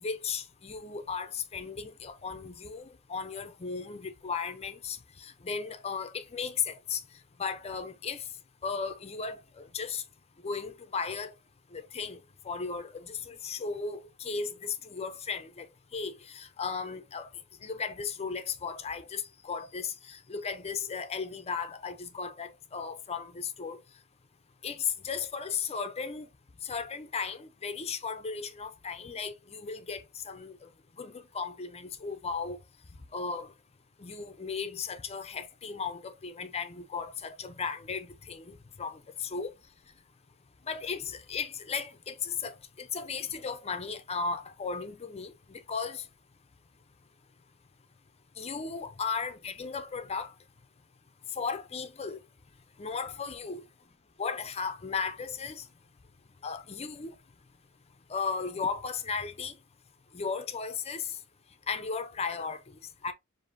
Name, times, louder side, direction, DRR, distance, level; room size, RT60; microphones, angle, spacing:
voice 1, 0.0-2.8 3.1-7.0 7.4-8.2 8.6-10.0 10.4-11.3 11.7-12.2 12.4-15.7 15.9-17.3 17.6-23.8 24.6-26.3 26.6-30.7 31.0-32.6 33.1-33.5 34.0-39.5 40.7-46.0 48.4-50.3 51.4-52.2 52.8-53.6 54.2-55.7 56.4-57.1 58.1-59.5 60.1-61.1 61.7-62.6 63.0-63.1, left 5 dB, 30° left, 0.5 m, -36 dB
7.1 x 2.7 x 2.6 m
head